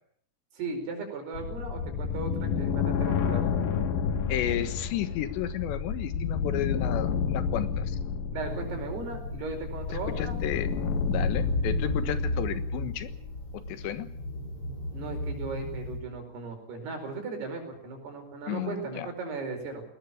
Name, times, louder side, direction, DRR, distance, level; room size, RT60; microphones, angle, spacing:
voice 1, 0.5-3.4 8.3-10.4 14.9-19.8, right 3 dB, 70° right, 5 dB, 6.8 m, -37 dB
sound 1, 1.3-12.6, left 6 dB, 60° left, 3.3 m, -30 dB
voice 2, 4.3-8.0 10.1-10.7 11.1-13.1 13.5-14.1 18.5-19.1, left 11 dB, 90° left, 11 dB, 3.6 m, -33 dB
sound 2, 8.4-16.0, left 1 dB, 30° left, 5.7 m, -34 dB
20.5 x 18.0 x 8.6 m, 0.65 s
omnidirectional pair, 4.9 m